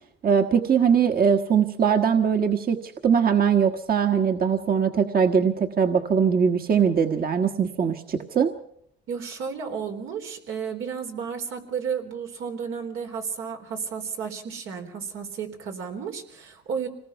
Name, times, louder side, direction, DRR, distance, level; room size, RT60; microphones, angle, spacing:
voice 1, 0.2-8.5, right 7 dB, 50° right, 6 dB, 1.4 m, -21 dB
voice 2, 9.1-16.9, right 6 dB, 85° right, 3 dB, 3.9 m, -32 dB
26.0 x 19.5 x 5.8 m, 0.69 s
cardioid pair, 90°, 20 cm